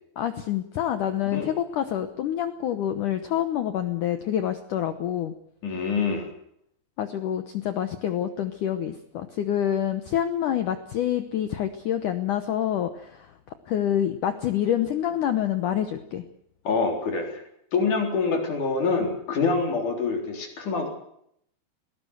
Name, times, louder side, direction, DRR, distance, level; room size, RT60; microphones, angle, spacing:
voice 1, 0.2-5.3 7.0-13.3 13.7-16.2, left 10 dB, 80° left, 9 dB, 1.8 m, -27 dB
voice 2, 5.6-6.3 16.6-17.4 17.7-20.9, left 4 dB, 45° left, 2 dB, 5.0 m, -25 dB
21.0 x 18.0 x 8.0 m, 0.73 s
omnidirectional pair, 5.1 m